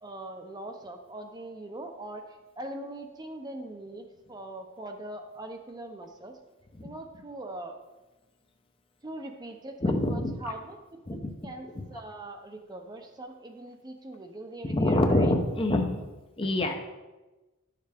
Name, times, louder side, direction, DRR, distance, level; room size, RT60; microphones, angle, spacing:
voice 1, 0.0-6.4 6.8-7.8 9.0-10.8 11.1-15.3, right 2 dB, 20° right, 4 dB, 0.7 m, -42 dB
voice 2, 9.8-10.5 11.1-11.3 14.7-16.0 16.4-16.7, left 1 dB, 25° left, 4 dB, 0.7 m, -25 dB
10.5 x 6.7 x 3.5 m, 1.1 s
head